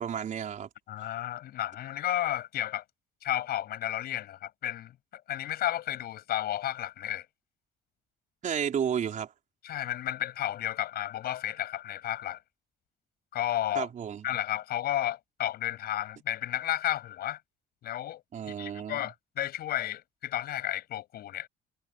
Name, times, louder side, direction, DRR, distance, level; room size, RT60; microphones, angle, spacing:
voice 1, 0.0-0.7 8.4-9.3 13.7-14.2 18.3-19.0, right 8 dB, 50° right, 4.5 m, -32 dB
voice 2, 0.9-2.8 3.2-7.2 9.6-12.4 13.3-13.9 14.2-17.4 17.8-18.2 18.6-21.5, left 12 dB, 65° left, 6.8 m, -32 dB
cardioid pair, 110°, 17 cm